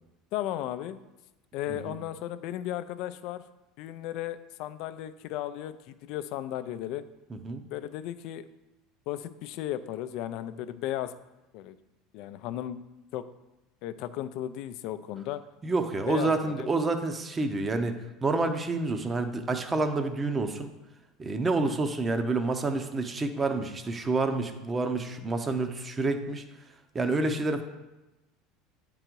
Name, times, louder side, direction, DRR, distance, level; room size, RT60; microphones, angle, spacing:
voice 1, 0.3-1.0 1.5-3.4 3.8-7.1 7.7-8.4 9.1-11.1 11.5-11.8 12.1-12.8 13.1-13.3 13.8-15.4 16.1-16.7 21.6-21.8, left 12 dB, 65° left, 12 dB, 0.4 m, -35 dB
voice 2, 7.3-7.6 15.6-20.7 21.2-26.4 26.9-27.6, right 3 dB, 20° right, 7 dB, 0.7 m, -28 dB
9.0 x 3.8 x 4.6 m, 1.0 s
supercardioid pair, 110°, 0 cm